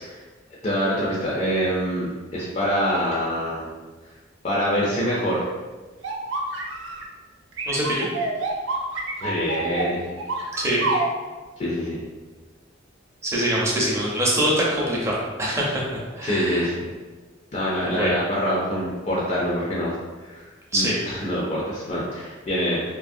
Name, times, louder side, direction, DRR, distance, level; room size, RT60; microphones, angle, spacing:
voice 1, 0.6-3.7 4.4-5.5 9.2-10.1 11.6-12.0 16.2-16.9 17.5-20.0 20.2-20.5 20.7-22.8, equal, 35° left, -6 dB, 0.4 m, -25 dB
sound 1, 6.0-7.0 7.6-11.1, right 3 dB, 70° right, 0.4 m, -27 dB
voice 2, 7.7-8.1 10.6-10.8 13.2-15.8 16.2-16.7 17.9-18.1 20.7-21.0, right 1 dB, 15° right, -5 dB, 0.5 m, -23 dB
2.7 x 2.5 x 2.5 m, 1.3 s
head